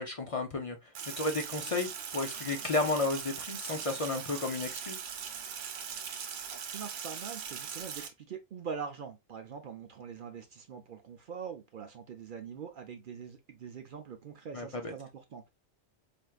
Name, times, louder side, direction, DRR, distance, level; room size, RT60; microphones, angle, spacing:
voice 1, 0.0-5.0 14.5-14.9, left 3 dB, 50° left, 0.4 m, -33 dB
Sink (filling or washing), 1.0-8.1, right 7 dB, 85° right, 1.0 m, -40 dB
voice 2, 6.5-15.5, right 6 dB, 55° right, 0.6 m, -43 dB
4.4 x 2.5 x 2.2 m
omnidirectional pair, 1.2 m